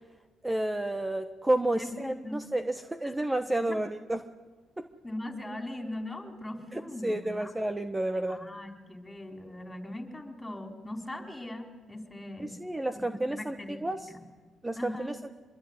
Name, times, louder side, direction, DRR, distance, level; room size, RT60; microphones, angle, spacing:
voice 1, 0.4-4.2 4.8-4.9 6.7-8.4 12.4-14.1 14.6-15.2, right 1 dB, 15° right, 8 dB, 1.3 m, -31 dB
voice 2, 1.7-2.5 3.0-3.1 3.6-3.8 5.0-7.5 8.3-12.6 13.1-14.2 14.7-15.1, left 1 dB, 15° left, 4 dB, 4.5 m, -40 dB
26.0 x 22.0 x 9.8 m, 1.3 s
cardioid pair, 90°, 0 cm